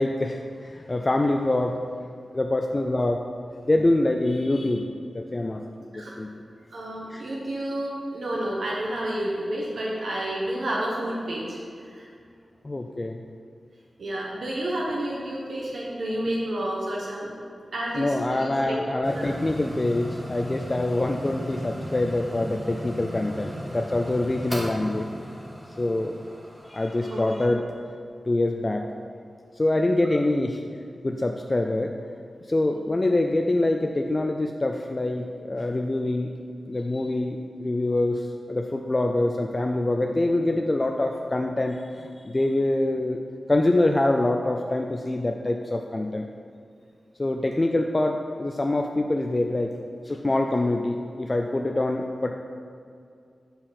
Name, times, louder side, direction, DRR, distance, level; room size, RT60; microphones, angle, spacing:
voice 1, 0.0-1.8 2.3-3.2 3.6-4.9 5.1-5.6 5.9-6.3 7.1-7.2 12.6-13.2 18.0-25.1 25.8-26.2 26.7-27.7 28.3-28.9 29.6-30.6 31.0-31.9 32.5-36.3 36.7-43.2 43.5-46.3 47.2-49.7 50.0-52.3, left 2 dB, 25° left, 3 dB, 0.3 m, -25 dB
voice 2, 6.7-11.6 11.9-12.1 14.0-17.3 17.7-19.3 27.0-27.2, right 1 dB, 70° right, -4 dB, 1.1 m, -30 dB
sound 1, 19.0-27.4, equal, 15° right, 1.5 m, -37 dB
6.8 x 4.4 x 5.7 m, 2.4 s
wide cardioid pair, 130°, 0 cm